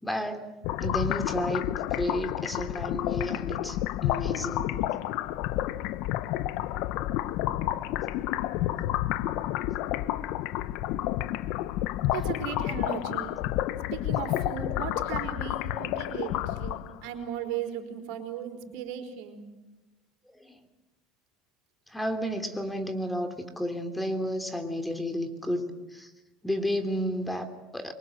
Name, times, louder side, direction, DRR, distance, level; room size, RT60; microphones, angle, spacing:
voice 1, 0.0-4.8 20.3-20.6 21.9-26.1 26.4-27.9, equal, 5° left, 8 dB, 3.2 m, -32 dB
sound 1, 0.6-17.1, left 14 dB, 70° left, 1.0 m, -30 dB
voice 2, 12.1-13.3 13.9-19.4, right 9 dB, 70° right, 5 dB, 4.6 m, -36 dB
24.5 x 24.5 x 7.8 m, 1.1 s
supercardioid pair, 95°, 0 cm